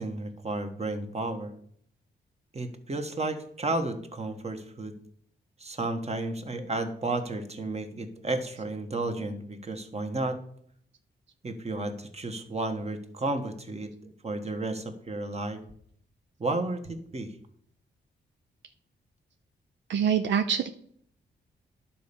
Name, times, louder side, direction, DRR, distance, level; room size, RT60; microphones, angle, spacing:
voice 1, 0.0-1.5 2.5-4.9 5.6-10.4 11.4-15.6 16.4-17.3, right 2 dB, 35° right, 7 dB, 1.3 m, -32 dB
voice 2, 19.9-20.7, right 8 dB, 75° right, 8 dB, 0.6 m, -25 dB
10.5 x 4.3 x 6.9 m, 0.66 s
cardioid pair, 65°, 19 cm